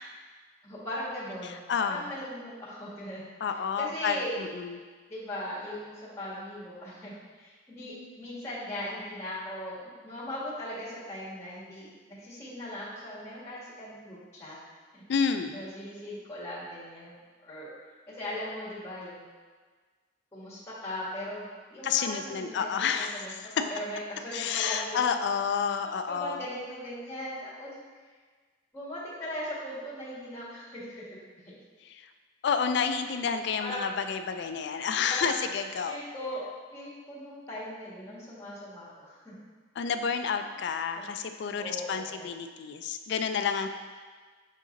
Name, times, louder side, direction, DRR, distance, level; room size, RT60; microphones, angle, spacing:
voice 1, 0.6-4.3 5.1-14.6 14.9-15.0 15.5-17.7 18.1-19.3 20.3-22.7 22.9-25.1 25.8-27.7 28.7-31.2 31.4-31.6 33.6-33.9 35.0-35.5 35.9-39.4 40.4-40.5 40.9-41.1 41.5-42.3, left 1 dB, 15° left, -8 dB, 1.8 m, -39 dB
voice 2, 1.4-2.1 3.4-4.8 15.1-15.6 21.8-23.4 24.3-26.4 31.9-32.1 32.4-36.0 39.8-43.7, left 6 dB, 65° left, 8 dB, 0.3 m, -30 dB
6.4 x 3.7 x 3.8 m, 1.5 s
head